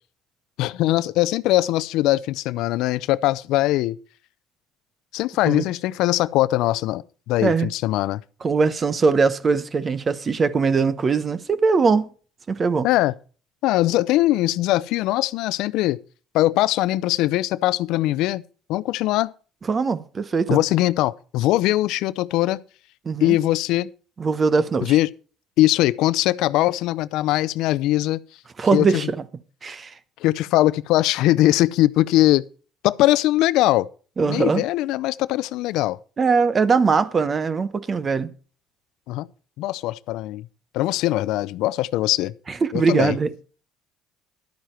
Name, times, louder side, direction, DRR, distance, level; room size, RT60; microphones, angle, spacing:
voice 1, 0.6-4.0 5.1-7.0 7.3-8.2 12.8-13.1 13.6-16.0 16.3-18.4 18.7-19.3 20.5-22.6 23.2-23.9 24.8-25.1 25.6-28.2 28.7-28.9 30.2-32.4 32.8-33.9 34.2-36.0 39.1-39.3 39.6-40.5 40.7-42.3 42.7-43.2, left 16 dB, 75° left, 0.5 m, -21 dB
voice 2, 8.4-12.1 12.5-12.9 19.7-20.6 23.0-23.4 24.2-25.0 28.6-29.2 29.6-29.9 34.2-34.6 36.2-38.3 42.5-43.3, right 4 dB, 35° right, 0.9 m, -21 dB
12.0 x 9.5 x 4.5 m
supercardioid pair, 85°, 0 cm